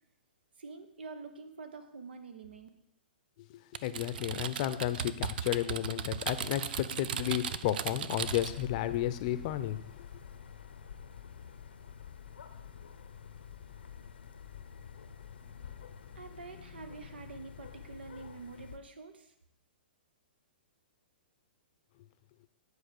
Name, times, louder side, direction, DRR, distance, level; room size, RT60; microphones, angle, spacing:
voice 1, 0.6-2.7 16.1-19.3, right 4 dB, 80° right, 8 dB, 1.2 m, -47 dB
voice 2, 3.5-10.0, left 13 dB, 45° left, 13 dB, 0.7 m, -33 dB
Typing, 3.7-8.7, right 9 dB, 60° right, 0.5 m, -37 dB
sound 1, 8.1-18.8, left 8 dB, 80° left, 0.9 m, -48 dB
10.5 x 4.7 x 6.8 m, 0.82 s
hypercardioid pair, 135°, 5 cm